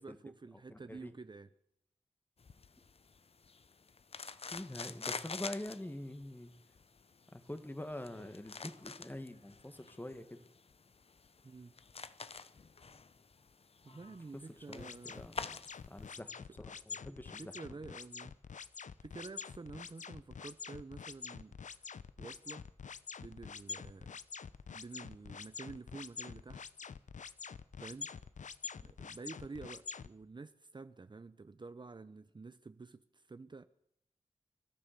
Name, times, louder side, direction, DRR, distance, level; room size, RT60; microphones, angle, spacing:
voice 1, 0.0-1.5 11.4-11.7 13.8-15.3 17.4-18.3 19.0-21.9 22.2-22.7 23.2-24.2 24.7-26.6 27.8-28.1 28.8-33.6, right 3 dB, 40° right, 0.8 m, -49 dB
voice 2, 0.7-1.1 4.5-6.5 7.3-10.4 14.1-14.2 14.7-16.3 16.6-17.5, left 1 dB, 15° left, 1.9 m, -45 dB
sound 1, 2.4-16.1, left 4 dB, 55° left, 0.9 m, -48 dB
sound 2, 14.8-30.1, left 6 dB, 85° left, 0.8 m, -46 dB
28.0 x 13.5 x 6.9 m
wide cardioid pair, 100°, 12 cm